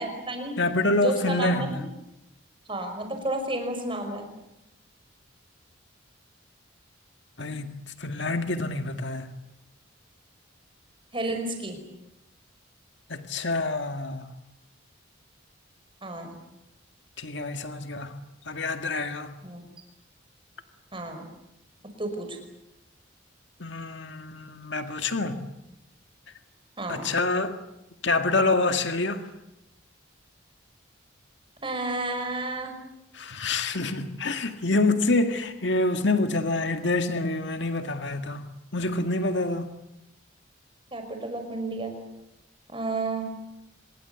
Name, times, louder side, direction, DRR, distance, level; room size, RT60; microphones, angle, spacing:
voice 1, 0.0-0.6 1.0-1.8 2.7-4.3 11.1-11.8 16.0-16.3 19.4-19.6 20.9-21.2 22.0-22.4 26.8-27.1 31.6-32.7 40.9-41.9 42.7-43.3, right 2 dB, 25° right, 5.2 m, -31 dB
voice 2, 0.6-1.7 7.4-9.3 13.1-14.3 17.2-18.1 18.5-19.3 23.6-25.4 26.9-27.6 28.0-29.2 33.1-38.5 38.7-39.7, left 2 dB, 60° left, 1.9 m, -27 dB
25.5 x 22.0 x 8.2 m
head